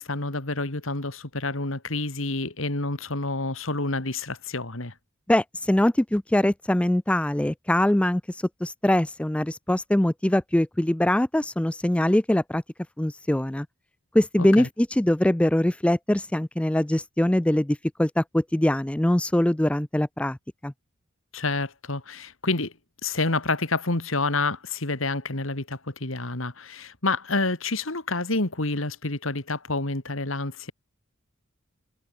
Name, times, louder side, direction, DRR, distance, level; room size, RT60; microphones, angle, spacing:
voice 1, 0.0-4.9 14.4-14.7 21.3-22.7 23.0-30.7, left 3 dB, 80° left, 2.9 m, -28 dB
voice 2, 5.3-12.6 13.0-13.7 14.1-20.4 20.6-20.7, left 1 dB, 5° left, 0.3 m, -23 dB
head